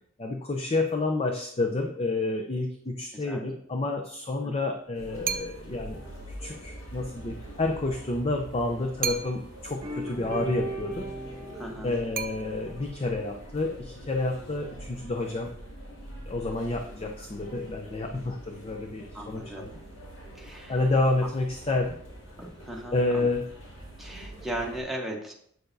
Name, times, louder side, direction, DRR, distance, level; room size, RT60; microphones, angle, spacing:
voice 1, 0.2-6.0 6.4-11.1 11.8-15.5 16.3-19.7 20.7-22.0 22.9-23.5, left 2 dB, 30° left, 3 dB, 0.5 m, -29 dB
sound 1, 4.9-24.8, right 1 dB, 70° left, 2.2 m, -45 dB
sound 2, 5.2-5.9 9.0-9.7 12.1-12.9, right 7 dB, 45° right, 0.5 m, -34 dB
sound 3, 9.8-13.3, right 2 dB, 25° right, 1.1 m, -38 dB
voice 2, 11.5-11.9 19.1-19.7 20.4-20.8 22.4-23.3 24.0-25.3, right 1 dB, ahead, -2 dB, 1.1 m, -37 dB
7.8 x 6.7 x 2.6 m, 0.64 s
head